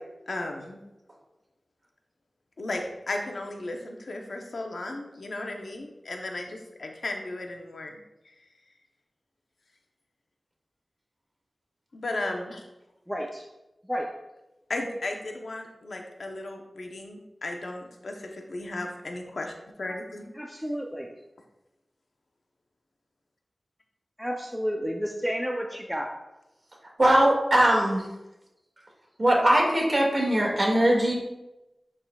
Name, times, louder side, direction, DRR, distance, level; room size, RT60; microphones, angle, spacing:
voice 1, 0.3-0.8 2.6-8.0 11.9-12.6 14.7-20.3, left 2 dB, 75° left, 2 dB, 0.8 m, -35 dB
voice 2, 13.1-13.4 13.9-14.1 20.4-21.1 24.2-26.1, equal, ahead, 1 dB, 0.6 m, -31 dB
voice 3, 27.0-28.1 29.2-31.1, right 1 dB, 45° right, -2 dB, 2.0 m, -21 dB
10.5 x 3.8 x 2.4 m, 0.97 s
wide cardioid pair, 50°, 0 cm